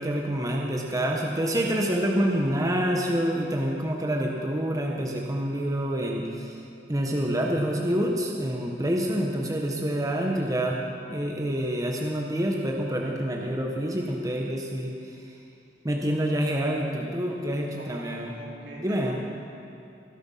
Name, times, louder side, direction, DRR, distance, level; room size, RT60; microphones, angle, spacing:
voice 1, 0.0-6.6 6.9-10.8 11.1-14.9 15.8-18.3 18.8-19.1, equal, 20° right, 0 dB, 1.3 m, -27 dB
voice 2, 10.1-10.5 17.2-19.2, right 1 dB, 80° right, -3 dB, 3.7 m, -44 dB
21.0 x 11.5 x 5.7 m, 2.5 s
head